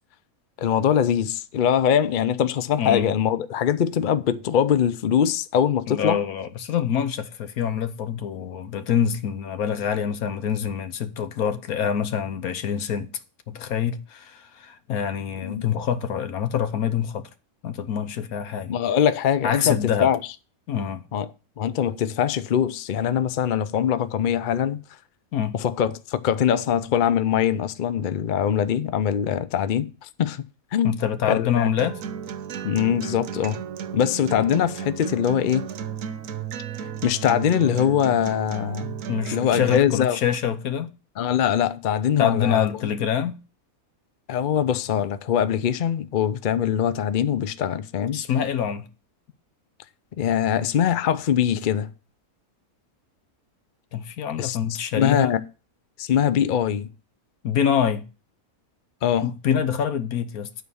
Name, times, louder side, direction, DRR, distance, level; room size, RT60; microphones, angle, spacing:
voice 1, 0.6-6.2 15.4-15.6 18.7-20.2 21.1-21.3 21.6-24.8 25.5-30.4 30.7-30.9 31.3-31.7 32.6-33.6 33.9-35.7 37.0-39.0 39.3-40.2 41.2-42.7 44.3-48.2 50.2-51.9 54.4-55.4 56.0-56.9 59.0-59.3, left 9 dB, 60° left, 0.5 m, -22 dB
voice 2, 2.8-3.1 5.9-13.1 13.5-17.3 17.6-18.8 19.4-20.1 20.7-21.0 25.3-25.6 30.8-32.0 39.1-40.9 42.2-43.4 48.1-48.9 53.9-55.3 57.4-58.0 59.2-60.5, left 8 dB, 75° left, 1.3 m, -25 dB
Acoustic guitar, 31.8-39.8, right 8 dB, 70° right, 1.1 m, -33 dB
11.0 x 4.2 x 6.9 m
omnidirectional pair, 1.5 m